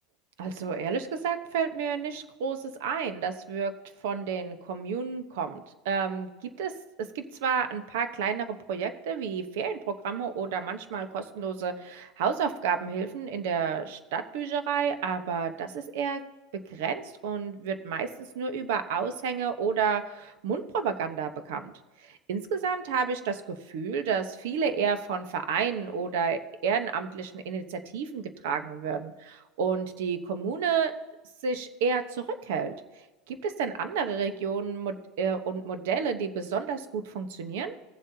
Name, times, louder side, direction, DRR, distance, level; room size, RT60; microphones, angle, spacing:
voice 1, 0.4-3.7 4.0-6.3 6.6-6.7 7.1-16.2 16.7-18.1 18.3-21.7 22.0-30.9 31.4-32.7 33.3-37.8, right 6 dB, 80° right, 9 dB, 1.1 m, -30 dB
18.0 x 7.5 x 2.9 m, 1.1 s
supercardioid pair, 135°, 0 cm